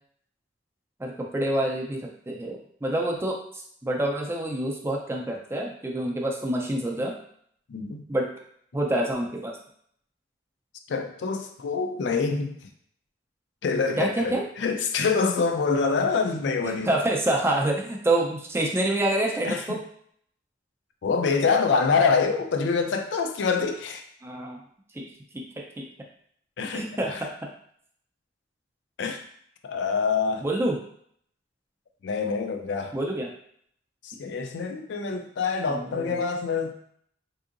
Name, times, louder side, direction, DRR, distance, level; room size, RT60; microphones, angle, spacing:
voice 1, 1.0-7.1 8.1-8.3 8.7-9.6 14.0-14.4 16.6-19.8 24.2-24.6 24.9-25.1 25.3-25.4 25.8-25.9 26.7-27.3 30.4-30.8 32.9-33.3 35.7-36.2, right 1 dB, 15° right, 0 dB, 0.4 m, -27 dB
voice 2, 7.7-8.0 10.9-12.5 13.6-16.9 19.5-19.6 21.0-24.0 26.6-27.2 29.0-29.2 29.6-30.5 32.0-33.0 34.2-36.7, left 5 dB, 70° left, 5 dB, 0.4 m, -25 dB
3.6 x 2.7 x 2.5 m, 0.65 s
head